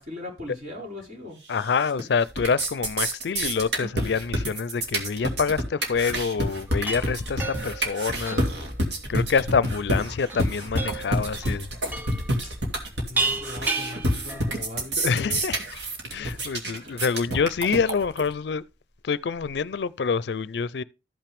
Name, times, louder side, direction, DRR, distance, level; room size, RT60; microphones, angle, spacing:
voice 1, 0.0-1.4 12.4-15.5 16.0-16.5 16.7-17.0, left 2 dB, 50° right, 4.9 m, -40 dB
voice 2, 1.5-8.5 9.1-11.7 15.0-15.6 16.1-18.6 19.0-20.8, left 5 dB, 70° left, 0.4 m, -26 dB
sound 1, 1.6-2.0 2.3-18.3, right 1 dB, 75° right, 2.3 m, -28 dB
sound 2, 6.7-14.8, right 3 dB, 10° right, 0.8 m, -33 dB
13.5 x 5.8 x 3.4 m
head